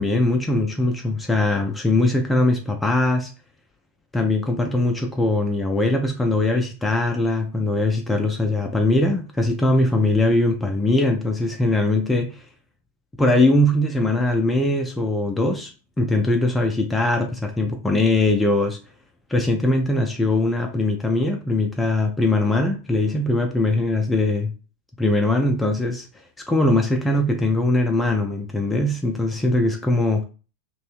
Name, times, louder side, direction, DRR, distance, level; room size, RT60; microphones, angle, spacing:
voice 1, 0.0-3.3 4.1-12.4 13.2-15.7 16.0-18.8 19.3-24.5 25.0-26.1 26.5-30.2, left 2 dB, 10° left, 3 dB, 0.4 m, -21 dB
2.6 x 2.0 x 3.0 m, 0.35 s
figure-of-eight pair, 90°, 0 cm